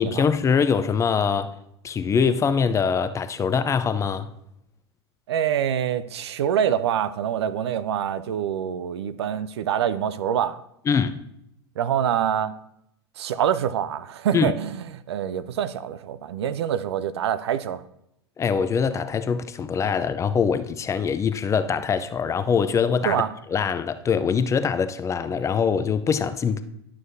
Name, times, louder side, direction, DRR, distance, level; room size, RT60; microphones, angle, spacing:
voice 1, 0.0-1.6 1.8-4.3 10.9-11.2 14.3-14.5 18.4-23.2 23.5-26.6, left 6 dB, 20° left, 0.5 m, -23 dB
voice 2, 5.3-10.6 11.8-12.5 13.2-17.8 23.0-23.3, right 9 dB, 75° right, 0.5 m, -25 dB
11.5 x 6.2 x 2.7 m
hypercardioid pair, 95°, 14 cm